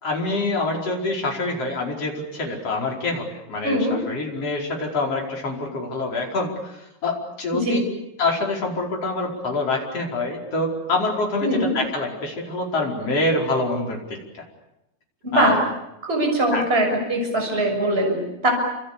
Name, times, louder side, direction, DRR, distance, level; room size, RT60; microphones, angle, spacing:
voice 1, 0.0-7.8 8.2-14.4 15.3-15.6 16.5-16.6, left 2 dB, 35° left, 0 dB, 5.7 m, -26 dB
voice 2, 3.6-4.0 7.5-7.8 11.4-11.7 15.2-15.5 16.0-18.5, right 1 dB, 15° right, 2 dB, 6.6 m, -21 dB
29.0 x 27.0 x 7.0 m, 0.89 s
omnidirectional pair, 4.6 m